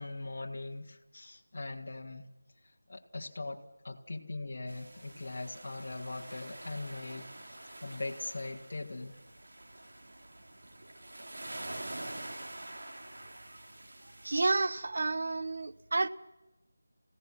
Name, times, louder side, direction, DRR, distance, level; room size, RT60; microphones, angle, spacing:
voice 1, 0.0-2.3 2.9-7.3 7.6-9.2, left 2 dB, 45° left, 0 dB, 1.9 m, -41 dB
sound 1, 4.7-14.5, right 1 dB, 65° right, 2.9 m, -46 dB
voice 2, 14.2-16.1, right 3 dB, 50° right, 13 dB, 0.9 m, -30 dB
28.5 x 17.0 x 6.0 m, 1.0 s
figure-of-eight pair, 175°, 0 cm